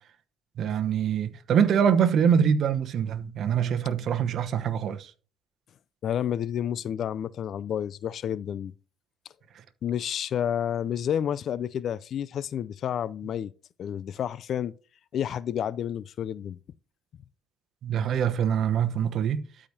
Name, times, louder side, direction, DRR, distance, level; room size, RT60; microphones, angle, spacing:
voice 1, 0.6-5.1 17.8-19.4, right 8 dB, 60° right, 1.0 m, -24 dB
voice 2, 6.0-8.7 9.8-13.5 13.8-14.7 15.1-16.6, left 9 dB, 60° left, 0.4 m, -30 dB
13.0 x 4.9 x 2.8 m
supercardioid pair, 65°, 0 cm